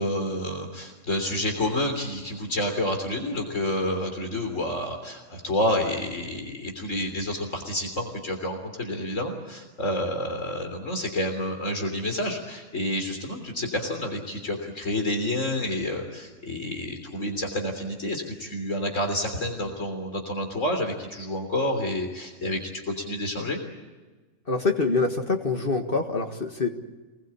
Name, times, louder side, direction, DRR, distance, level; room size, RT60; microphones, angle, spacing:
voice 1, 0.0-23.6, left 1 dB, 70° left, 4 dB, 3.8 m, -29 dB
voice 2, 24.5-26.7, left 3 dB, 45° left, 4 dB, 2.0 m, -25 dB
27.0 x 21.0 x 8.6 m, 1.2 s
omnidirectional pair, 1.4 m